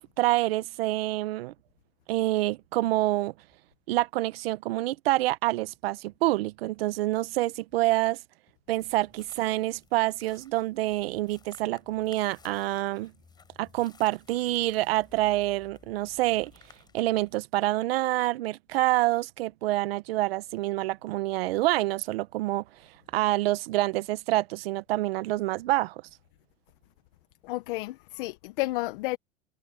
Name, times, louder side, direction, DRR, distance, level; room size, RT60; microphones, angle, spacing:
voice 1, 0.2-1.5 2.1-3.3 3.9-8.2 8.7-13.1 13.6-16.5 16.9-22.6 23.1-25.9, right 17 dB, 80° right, 1.0 m, -27 dB
sound 1, 8.8-17.3, left 5 dB, 15° left, 5.2 m, -58 dB
voice 2, 27.4-29.2, left 21 dB, 60° left, 0.7 m, -31 dB
supercardioid pair, 165°, 30 cm